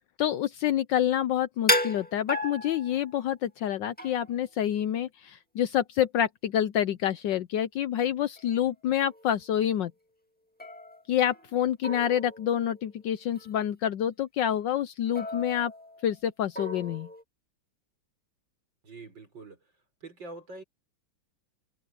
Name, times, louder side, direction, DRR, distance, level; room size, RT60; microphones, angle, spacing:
voice 1, 0.2-9.9 11.1-15.7 16.0-17.1, left 10 dB, 70° left, 1.3 m, -27 dB
sound 1, 1.7-3.3 4.0-4.4 8.4-8.5 9.0-9.3 10.6-11.6 11.8-12.9 13.4-13.6 15.2-16.1 16.6-17.2, left 1 dB, 5° left, 1.7 m, -33 dB
voice 2, 18.8-19.6 20.0-20.6, right 3 dB, 65° right, 7.4 m, -44 dB
omnidirectional pair, 2.2 m